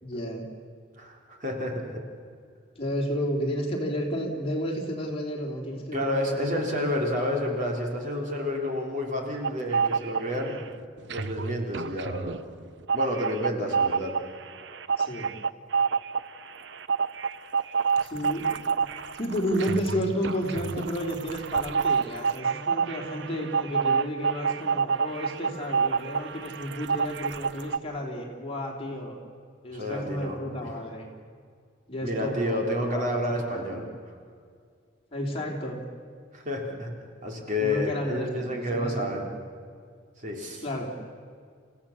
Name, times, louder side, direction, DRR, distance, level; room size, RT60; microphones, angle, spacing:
voice 1, 0.0-0.4 2.8-6.5 10.3-10.6 15.0-15.3 18.0-18.6 19.2-29.2 29.6-31.1 31.9-33.1 33.5-33.8 35.1-35.8 37.6-39.3 40.6-40.9, equal, 30° left, -1 dB, 3.6 m, -32 dB
voice 2, 1.0-2.0 5.9-10.5 11.1-12.3 12.9-14.1 29.7-30.7 32.0-33.8 36.3-36.9 37.2-39.3 40.2-40.6, left 1 dB, 40° right, 1 dB, 3.3 m, -30 dB
sound 1, 9.4-10.6 11.0-27.8, right 5 dB, 65° right, 0.7 m, -28 dB
29.0 x 16.5 x 7.2 m, 2.1 s
head